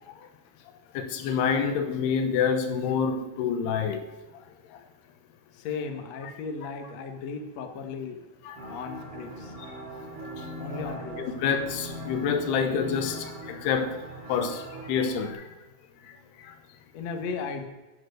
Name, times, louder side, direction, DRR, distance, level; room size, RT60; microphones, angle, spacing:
voice 1, 1.0-4.0 6.2-6.3 6.6-6.7 8.5-8.6 10.7-10.9 11.2-14.0 14.3-14.6 14.9-15.4, left 6 dB, 80° left, 3.1 m, -27 dB
voice 2, 5.5-8.2 8.7-9.5 10.6-11.2 16.9-17.7, left 5 dB, 55° left, 2.1 m, -36 dB
sound 1, 8.6-15.3, equal, 50° right, 5.8 m, -40 dB
11.5 x 10.5 x 6.6 m
omnidirectional pair, 4.7 m